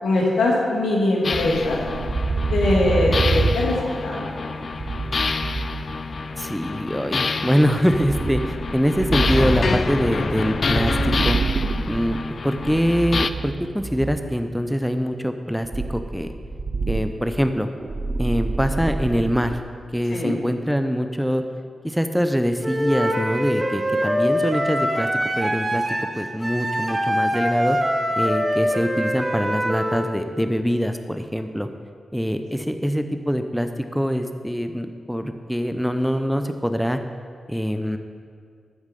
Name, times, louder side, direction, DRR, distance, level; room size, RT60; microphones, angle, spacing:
voice 1, 0.0-1.8 2.5-4.3 20.1-20.3, left 2 dB, 80° left, -3 dB, 2.2 m, -21 dB
sound 1, 1.2-13.3, left 4 dB, 60° left, 0.4 m, -27 dB
sound 2, 1.3-6.5 7.7-14.4 15.6-19.6, right 3 dB, 45° right, 0.4 m, -27 dB
voice 2, 6.4-11.4 11.9-16.3 16.9-17.7 18.2-19.6 19.9-21.4 21.8-25.1 25.4-25.8 26.1-27.8 28.2-31.7 32.1-37.0 37.5-38.0, equal, ahead, 7 dB, 0.6 m, -24 dB
Wind instrument woodwind instrument, 22.6-30.1, equal, 25° right, 1.5 m, -24 dB
13.5 x 5.0 x 5.4 m, 2.1 s
supercardioid pair, 45°, 0 cm